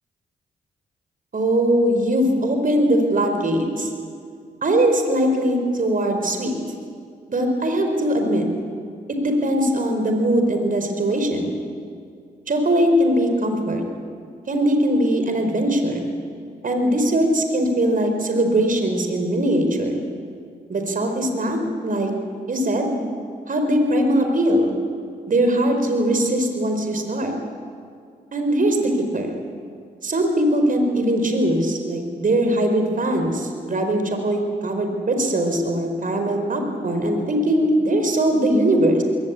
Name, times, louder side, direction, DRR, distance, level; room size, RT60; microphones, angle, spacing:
voice 1, 1.3-3.9 4.6-6.5 7.3-8.5 9.2-11.5 12.5-13.8 14.5-16.1 16.6-20.0 20.7-22.1 22.5-23.0 23.5-24.7 25.3-27.3 28.3-29.3 30.0-39.0, right 1 dB, 50° right, 5 dB, 4.8 m, -21 dB
21.5 x 19.0 x 8.5 m, 2.3 s
supercardioid pair, 50°, 18 cm